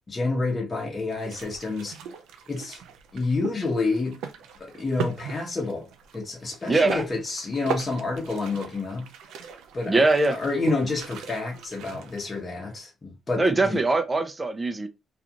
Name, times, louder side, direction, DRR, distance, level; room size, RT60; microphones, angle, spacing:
voice 1, 0.1-2.0 2.5-2.8 3.1-4.2 4.6-9.1 9.4-13.8, left 3 dB, 30° left, 0.9 m, -29 dB
sound 1, 1.1-12.4, right 6 dB, 90° right, 0.4 m, -38 dB
voice 2, 6.7-7.0 9.9-10.4 13.4-14.9, right 2 dB, 20° right, 0.5 m, -22 dB
2.5 x 2.4 x 2.8 m
cardioid pair, 90°, 0 cm